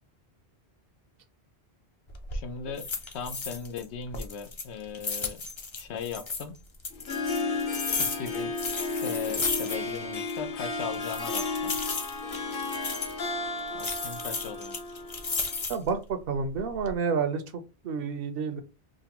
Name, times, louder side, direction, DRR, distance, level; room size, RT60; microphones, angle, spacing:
sound 1, 2.1-2.4 2.8-3.8 4.1-6.4 6.8-10.0 10.3-10.4 10.9-13.2 13.8-15.9 16.4-16.9, left 4 dB, 35° left, 0.5 m, -34 dB
voice 1, 2.3-2.9 3.1-5.4 5.8-6.6 8.1-8.5 9.0-11.7 13.7-14.8, left 6 dB, 90° left, 7 dB, 0.9 m, -38 dB
Harp, 6.9-15.6, left 3 dB, 60° left, 0.9 m, -33 dB
voice 2, 15.7-17.4 17.8-18.6, right 5 dB, 65° right, 9 dB, 0.8 m, -29 dB
5.1 x 2.1 x 2.9 m, 0.29 s
omnidirectional pair, 1.1 m